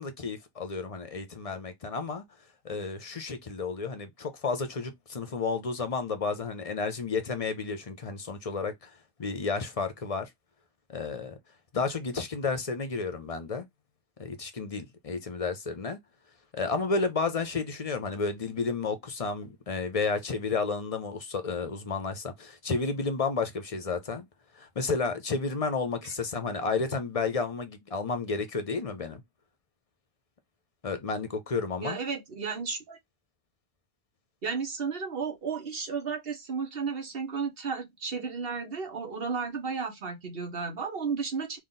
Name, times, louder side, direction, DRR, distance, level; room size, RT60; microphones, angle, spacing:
voice 1, 0.0-2.2 2.6-8.9 9.2-10.3 10.9-11.4 11.7-13.7 14.2-16.0 16.5-24.3 24.6-29.2 30.8-32.0, left 4 dB, 40° left, 0.6 m, -31 dB
voice 2, 31.8-33.0 34.4-41.6, right 5 dB, 60° right, 1.4 m, -33 dB
3.9 x 2.4 x 3.8 m
omnidirectional pair, 1.1 m